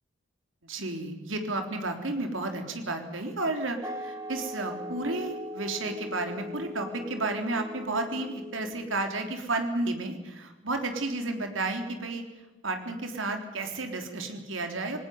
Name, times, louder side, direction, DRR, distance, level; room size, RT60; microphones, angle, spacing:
voice 1, 0.6-12.2 12.6-15.0, right 2 dB, 80° right, 5 dB, 3.6 m, -32 dB
sound 1, 3.8-9.3, left 1 dB, 15° right, 1.9 m, -40 dB
20.0 x 18.5 x 9.3 m, 1.1 s
head